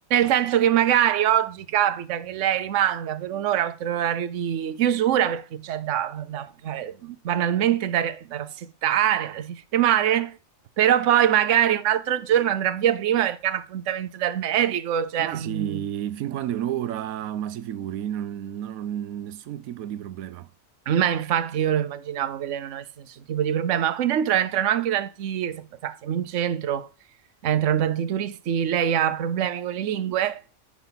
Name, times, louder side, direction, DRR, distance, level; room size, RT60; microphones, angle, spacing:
voice 1, 0.1-10.4 10.8-15.8 20.9-26.9 27.4-30.4, right 10 dB, 65° right, 1.1 m, -24 dB
voice 2, 15.2-20.5, right 11 dB, 85° right, 1.1 m, -31 dB
9.8 x 6.0 x 3.9 m
omnidirectional pair, 1.4 m